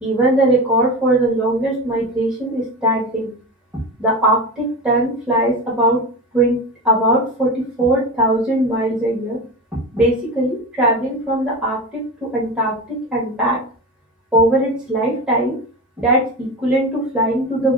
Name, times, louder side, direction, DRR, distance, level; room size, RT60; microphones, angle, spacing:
voice 1, 0.0-3.3 4.0-6.0 6.3-6.6 6.8-9.4 9.7-13.6 14.3-15.6 16.0-17.7, right 1 dB, 5° right, -7 dB, 0.9 m, -19 dB
2.4 x 2.3 x 2.4 m, 0.38 s
head